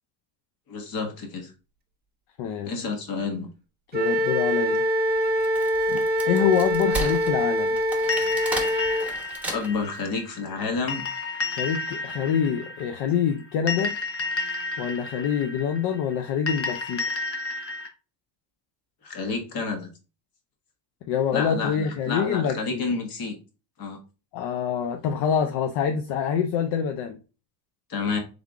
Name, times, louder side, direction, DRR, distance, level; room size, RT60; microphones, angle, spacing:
voice 1, 0.7-1.5 2.6-3.5 9.5-11.0 19.0-19.9 21.3-23.4 23.8-24.0 27.9-28.2, left 4 dB, 50° left, 1.5 m, -29 dB
voice 2, 2.4-2.7 3.9-4.9 5.9-7.8 11.5-14.0 14.8-17.0 21.1-22.8 24.3-27.2, left 8 dB, 75° left, 0.7 m, -26 dB
Wind instrument woodwind instrument, 3.9-9.1, equal, 20° right, 0.7 m, -24 dB
Wood, 5.2-10.0, right 2 dB, 5° right, 1.2 m, -34 dB
sound 1, 8.1-17.9, left 3 dB, 30° left, 0.9 m, -32 dB
3.7 x 3.5 x 3.5 m
cardioid pair, 125°, 44 cm